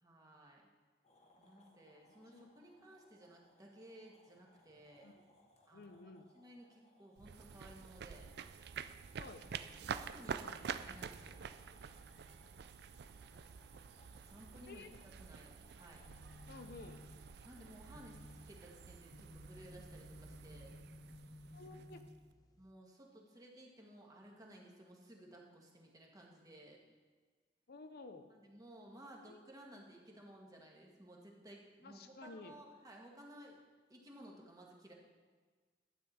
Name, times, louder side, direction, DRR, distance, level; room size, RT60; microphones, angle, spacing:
voice 1, 0.0-0.7 1.4-5.1 5.7-5.9 6.3-8.3 9.8-11.5 14.3-14.9 15.2-16.0 17.4-20.7 22.6-26.8 28.3-33.6 33.9-34.9, right 1 dB, 20° right, -1 dB, 1.7 m, -57 dB
sound 1, 1.0-18.9, left 2 dB, 40° left, 1.3 m, -69 dB
voice 2, 2.3-2.7 5.0-5.1 5.7-6.3 9.2-9.4 14.7-14.9 16.5-17.0 21.5-22.0 27.7-28.3 29.2-29.5 31.8-32.5, left 3 dB, 60° left, 8 dB, 0.7 m, -53 dB
sound 2, 7.2-22.3, right 6 dB, 65° right, 0.4 m, -48 dB
sound 3, 15.8-22.7, left 1 dB, 20° left, 0.7 m, -57 dB
12.0 x 8.4 x 4.3 m, 1.4 s
head